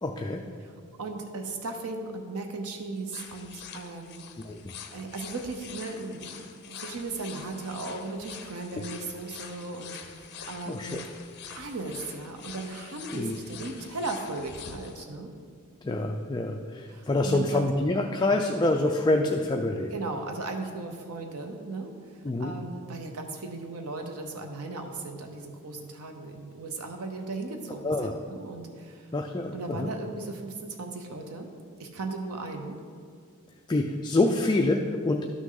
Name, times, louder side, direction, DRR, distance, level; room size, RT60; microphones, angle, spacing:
voice 1, 0.0-0.4 4.5-4.7 8.8-8.9 10.7-11.0 13.1-13.4 15.8-19.9 22.2-22.5 27.8-28.1 29.1-29.9 33.7-35.2, left 2 dB, 20° left, 2 dB, 0.4 m, -26 dB
voice 2, 1.0-4.2 4.9-11.1 11.5-15.3 16.9-17.6 19.9-29.1 29.5-31.5 31.8-32.8, right 3 dB, 80° right, 4 dB, 0.8 m, -37 dB
sound 1, 3.1-15.0, left 7 dB, 50° left, 0.7 m, -45 dB
12.0 x 6.3 x 3.8 m, 2.1 s
head